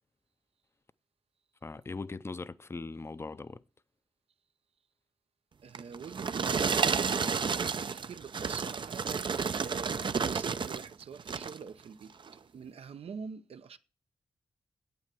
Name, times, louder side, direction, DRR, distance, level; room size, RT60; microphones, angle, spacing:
voice 1, 1.6-3.6, left 3 dB, 25° left, 0.5 m, -40 dB
voice 2, 5.6-12.1 12.5-13.8, right 6 dB, 80° right, 0.8 m, -45 dB
sound 1, 5.7-10.9 11.2-11.6 12.2-12.3, right 5 dB, 55° right, 0.6 m, -31 dB
9.4 x 8.4 x 7.7 m
wide cardioid pair, 85°, 10 cm